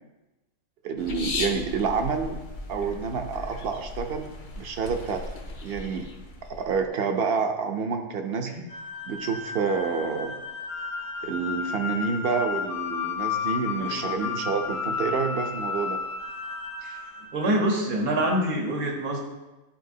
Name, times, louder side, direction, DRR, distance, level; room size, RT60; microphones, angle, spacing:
voice 1, 0.8-2.4 2.7-5.2 5.6-6.1 6.5-8.5 9.1-10.3 11.2-16.0, right 5 dB, 55° right, 5 dB, 0.7 m, -28 dB
sound 1, 1.0-6.9, left 2 dB, 50° left, 0.6 m, -37 dB
sound 2, 8.7-17.9, left 5 dB, 85° left, 1.5 m, -33 dB
voice 2, 13.8-14.3 16.8-17.0 17.3-19.2, right 1 dB, 80° right, 0 dB, 1.6 m, -26 dB
10.5 x 4.3 x 2.7 m, 1.1 s
omnidirectional pair, 1.5 m